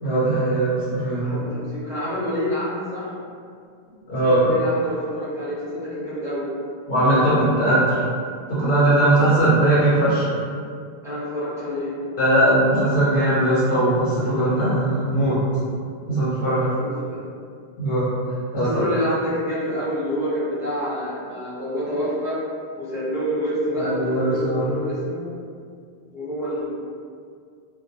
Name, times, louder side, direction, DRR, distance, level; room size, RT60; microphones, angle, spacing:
voice 1, 0.0-1.4 4.1-4.4 6.9-8.0 8.5-10.3 12.2-15.4 16.1-16.7 17.8-18.1 18.5-18.7 23.8-24.7, right 1 dB, 65° left, -11 dB, 0.8 m, -19 dB
voice 2, 1.2-3.1 4.1-6.5 11.0-12.0 16.4-17.2 18.6-22.4 22.8-25.3 26.1-26.7, equal, 5° right, -11 dB, 0.6 m, -27 dB
2.3 x 2.1 x 2.6 m, 2.2 s
omnidirectional pair, 1.0 m